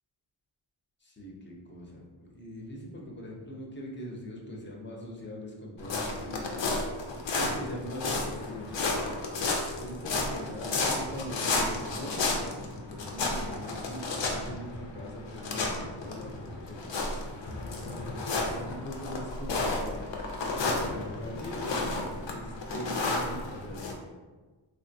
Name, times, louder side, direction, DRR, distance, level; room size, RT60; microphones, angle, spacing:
voice 1, 1.0-6.7 7.3-9.0 9.8-18.0 18.4-20.0 20.7-23.9, left 1 dB, 25° left, -2 dB, 0.6 m, -41 dB
sound 1, 5.8-23.9, left 3 dB, 65° left, 0.6 m, -32 dB
3.2 x 2.2 x 2.6 m, 1.3 s
wide cardioid pair, 85°, 48 cm